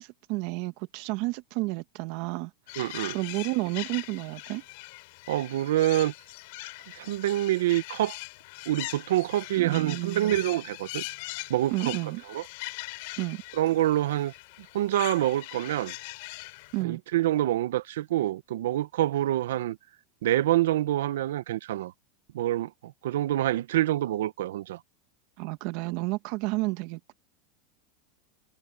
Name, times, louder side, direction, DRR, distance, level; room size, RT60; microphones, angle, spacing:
voice 1, 0.0-2.5 3.1-4.6 9.6-10.4 11.7-12.2 13.2-13.4 16.7-17.0 25.4-27.1, right 22 dB, 55° right, 1.2 m, -31 dB
sound 1, 2.7-16.8, left 25 dB, 60° left, 4.3 m, -41 dB
voice 2, 2.8-3.2 5.3-6.1 6.9-8.2 8.7-11.0 11.5-11.9 12.3-12.4 13.6-14.3 14.7-15.9 16.8-19.8 20.2-21.9 22.3-24.8, right 14 dB, 85° right, 0.8 m, -26 dB
supercardioid pair, 150°, 0 cm